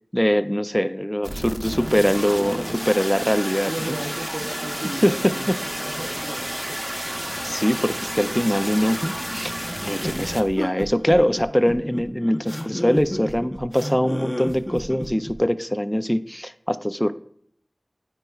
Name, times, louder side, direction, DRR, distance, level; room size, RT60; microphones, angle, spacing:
voice 1, 0.1-3.9 5.0-5.6 7.4-9.5 9.8-17.1, equal, 10° left, 12 dB, 0.3 m, -22 dB
sound 1, 1.2-10.4, equal, 15° right, 0.7 m, -31 dB
Train, 3.4-11.6 12.0-12.1, right 1 dB, 50° right, 1.0 m, -48 dB
voice 2, 3.6-6.8 9.2-9.6, right 1 dB, 80° right, 3 dB, 0.8 m, -35 dB
sound 2, 10.0-15.3, equal, 25° left, 0.8 m, -31 dB
12.0 x 4.4 x 2.3 m, 0.65 s
wide cardioid pair, 50°, 0 cm